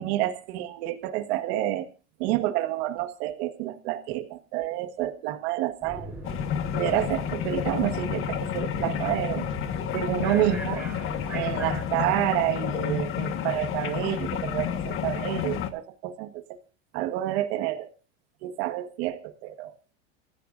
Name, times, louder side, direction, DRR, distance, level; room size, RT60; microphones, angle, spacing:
voice 1, 0.0-1.9 2.2-6.1 6.7-9.5 9.9-10.9 11.3-16.6 16.9-17.9 18.4-19.8, right 14 dB, 65° right, 7 dB, 1.7 m, -29 dB
sound 1, 5.8-11.8, right 1 dB, 5° right, 7.7 m, -39 dB
sound 2, 6.2-15.7, left 9 dB, 40° left, 1.5 m, -30 dB
27.5 x 15.0 x 2.6 m, 0.34 s
supercardioid pair, 130°, 34 cm